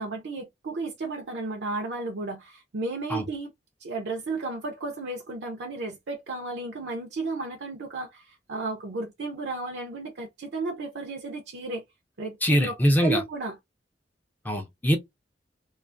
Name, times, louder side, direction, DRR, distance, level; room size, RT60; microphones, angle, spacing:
voice 1, 0.0-3.5 3.8-11.8 12.2-13.6, right 3 dB, 75° right, 0.5 m, -33 dB
voice 2, 12.4-13.2 14.5-15.0, equal, 10° left, 0.4 m, -22 dB
2.3 x 2.3 x 2.5 m
head